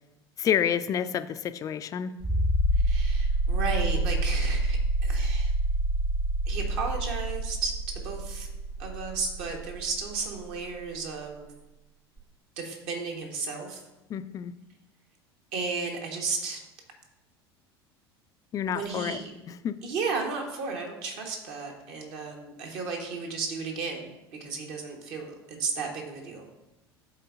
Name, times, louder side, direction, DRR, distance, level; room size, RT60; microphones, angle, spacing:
voice 1, 0.4-2.1 14.1-14.5 18.5-19.2 19.5-19.8, left 8 dB, 25° left, 12 dB, 0.4 m, -29 dB
sound 1, 2.2-10.7 12.2-12.3, right 1 dB, 25° right, 0.9 m, -27 dB
voice 2, 2.8-5.5 6.5-7.7 8.0-8.5 8.8-11.5 12.6-13.8 15.5-16.6 18.7-19.3 19.8-24.1 24.4-26.4, right 4 dB, 50° right, 2 dB, 1.4 m, -34 dB
11.0 x 4.2 x 2.6 m, 1.0 s
figure-of-eight pair, 70°, 13 cm